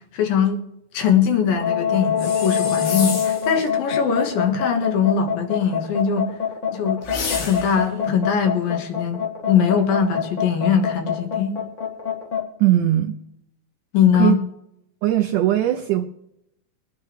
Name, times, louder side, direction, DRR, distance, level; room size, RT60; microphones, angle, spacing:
voice 1, 0.1-0.6 0.9-6.3 6.7-7.0 7.4-11.6 13.9-14.4, left 7 dB, 70° left, 5 dB, 3.1 m, -21 dB
sound 1, 1.5-12.4, left 8 dB, 40° left, 1.1 m, -25 dB
sound 2, 2.2-3.5 7.0-7.9, left 4 dB, 90° left, 4.5 m, -29 dB
voice 2, 12.6-13.1 14.1-14.4 15.0-16.0, right 13 dB, 80° right, 5 dB, 1.9 m, -19 dB
23.0 x 9.6 x 3.3 m, 0.81 s
omnidirectional pair, 4.4 m